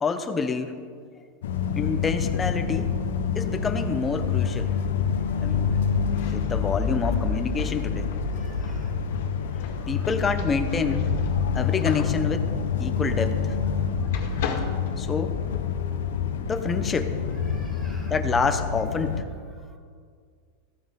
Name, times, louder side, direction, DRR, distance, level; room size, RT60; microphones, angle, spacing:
voice 1, 0.0-0.7 1.8-2.9 3.3-4.7 5.4-5.8 6.3-8.1 9.9-11.1 11.5-12.5 12.8-13.5 15.0-15.4 16.4-17.1 18.1-19.2, left 5 dB, 15° left, 8 dB, 0.9 m, -27 dB
sound 1, 1.4-19.2, left 6 dB, 85° left, 1.0 m, -27 dB
sound 2, 6.0-13.8 14.1-15.7, left 6 dB, 65° left, 2.1 m, -39 dB
voice 2, 8.3-9.0 9.8-10.1 14.8-14.9 17.3-18.2 19.5-19.8, right 2 dB, 15° right, 1 dB, 2.1 m, -53 dB
14.5 x 14.5 x 3.8 m, 2.1 s
supercardioid pair, 145°, 0 cm